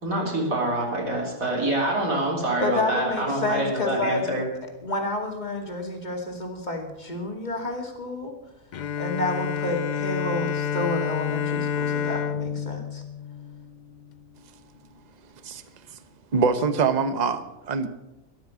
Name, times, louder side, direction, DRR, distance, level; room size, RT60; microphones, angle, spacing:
voice 1, 0.0-4.5, right 1 dB, 75° right, -2 dB, 4.2 m, -26 dB
voice 2, 2.6-4.2 4.8-8.3 9.0-13.0, left 2 dB, 30° left, 2 dB, 2.5 m, -29 dB
Bowed string instrument, 8.7-14.2, left 7 dB, 60° left, 0.5 m, -29 dB
voice 3, 16.3-17.9, right 5 dB, 35° right, 11 dB, 0.9 m, -24 dB
13.0 x 12.5 x 6.2 m, 0.96 s
omnidirectional pair, 1.4 m